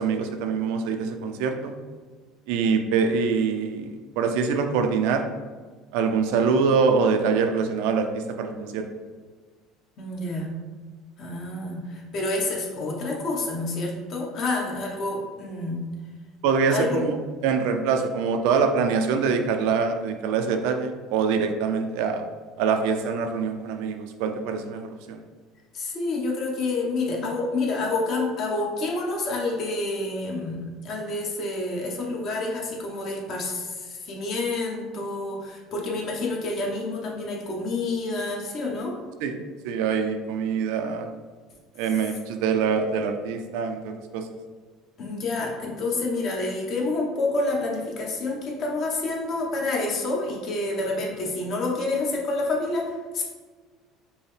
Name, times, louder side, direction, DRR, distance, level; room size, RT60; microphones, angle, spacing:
voice 1, 0.0-1.7 2.5-5.2 5.9-8.9 16.4-17.2 17.4-22.2 22.6-25.2 39.2-39.4 39.6-41.1 41.8-44.3, right 5 dB, 80° right, 6 dB, 0.4 m, -24 dB
voice 2, 10.0-10.5 11.2-15.8 16.7-17.0 25.7-39.0 45.0-53.2, left 2 dB, 50° left, -1 dB, 1.0 m, -28 dB
5.3 x 2.1 x 3.2 m, 1.4 s
supercardioid pair, 115°, 0 cm